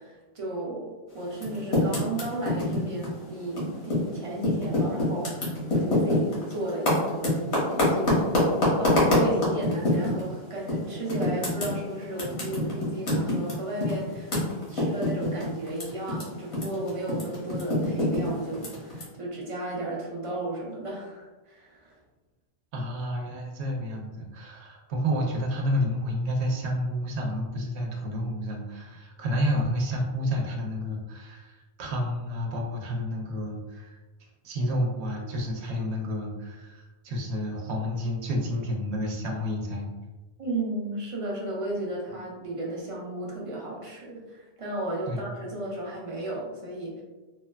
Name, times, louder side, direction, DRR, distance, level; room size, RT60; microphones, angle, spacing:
voice 1, 0.0-8.5 8.8-14.3 14.7-22.0 40.4-47.0, right 1 dB, 45° right, -3 dB, 0.5 m, -34 dB
Typing, 1.3-4.1 4.4-10.3 10.7-10.8 11.1-16.2 16.5-19.0, left 1 dB, 80° left, 1.2 m, -25 dB
voice 2, 22.7-39.9 45.1-45.2, equal, 90° right, 0 dB, 0.8 m, -30 dB
2.9 x 2.2 x 2.2 m, 1.2 s
omnidirectional pair, 1.1 m